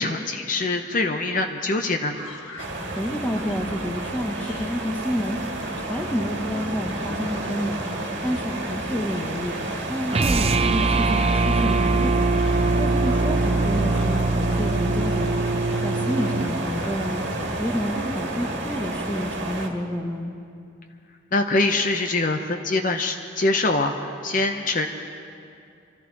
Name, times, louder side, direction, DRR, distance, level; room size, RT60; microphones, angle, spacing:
voice 1, 0.0-2.2 21.3-24.9, left 2 dB, 40° left, 5 dB, 0.7 m, -24 dB
sound 1, 2.0-9.8 10.1-10.6 10.8-11.4 11.7-17.7, left 2 dB, 75° left, 1.7 m, -44 dB
sound 2, 2.6-19.7, right 2 dB, 60° right, 1.7 m, -31 dB
voice 2, 3.0-5.4 5.8-7.8 8.2-9.6 9.9-12.4 12.8-15.4 15.8-17.2 17.6-20.3, equal, 10° left, 3 dB, 1.0 m, -29 dB
sound 3, 10.1-16.5, right 3 dB, 30° right, 0.6 m, -22 dB
25.0 x 14.0 x 4.0 m, 2.4 s
head